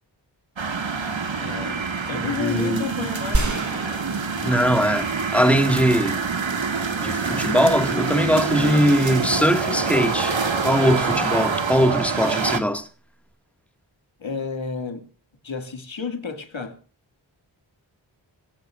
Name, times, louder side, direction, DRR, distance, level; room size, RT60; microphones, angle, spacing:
sound 1, 0.6-12.6, right 5 dB, 80° right, 2.0 m, -26 dB
voice 1, 1.4-3.7 14.2-15.1 15.4-16.8, left 5 dB, 85° left, 2.5 m, -31 dB
voice 2, 2.1-2.9 4.4-6.2 7.0-10.4 10.6-12.9, equal, 5° left, 2.0 m, -21 dB
sound 2, 3.3-5.6, right 2 dB, 40° right, 3.6 m, -29 dB
25.0 x 16.5 x 2.6 m
wide cardioid pair, 75°, 45 cm